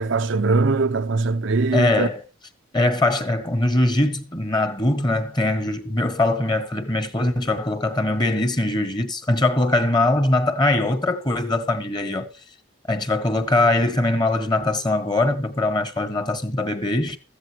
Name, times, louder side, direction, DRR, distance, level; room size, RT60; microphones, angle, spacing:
voice 1, 0.0-2.1, right 3 dB, 75° right, 0.6 m, -21 dB
voice 2, 1.7-2.2 2.7-12.3 12.9-17.2, left 2 dB, 25° left, 1.5 m, -22 dB
15.5 x 14.0 x 3.0 m
head